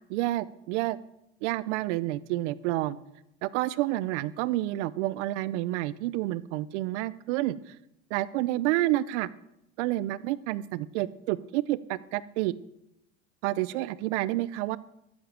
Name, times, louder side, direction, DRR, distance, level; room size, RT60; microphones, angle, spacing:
voice 1, 0.1-1.0 1.4-3.0 3.4-7.7 8.1-9.3 9.8-12.5 13.4-14.8, right 16 dB, 85° right, 17 dB, 0.7 m, -29 dB
12.5 x 7.3 x 7.6 m, 0.84 s
supercardioid pair, 120°, 35 cm